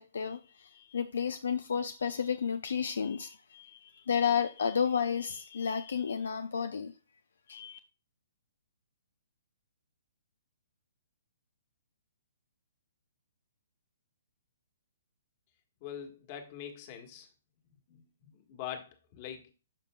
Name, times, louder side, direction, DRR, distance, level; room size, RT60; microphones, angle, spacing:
voice 1, 0.0-6.9 7.5-7.8, left 7 dB, 75° left, 0.5 m, -32 dB
voice 2, 15.8-17.3 17.9-19.5, left 9 dB, 40° left, 1.7 m, -44 dB
12.0 x 5.1 x 2.3 m
hypercardioid pair, 135°, 0 cm